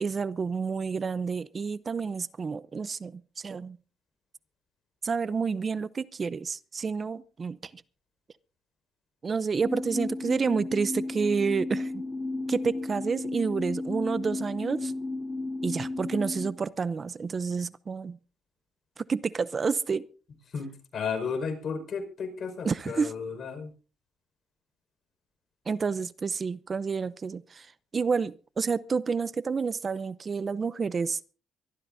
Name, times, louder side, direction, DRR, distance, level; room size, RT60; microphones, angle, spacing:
voice 1, 0.0-3.8 5.0-7.8 9.2-12.0 12.5-14.9 15.6-18.2 19.0-20.0 22.6-23.1 25.7-27.7 27.9-31.2, right 5 dB, 40° right, 0.6 m, -29 dB
sound 1, 9.6-16.5, left 2 dB, 30° left, 3.5 m, -33 dB
voice 2, 20.5-23.7, left 5 dB, 55° left, 5.1 m, -33 dB
24.0 x 13.5 x 2.7 m
cardioid pair, 90°, 0 cm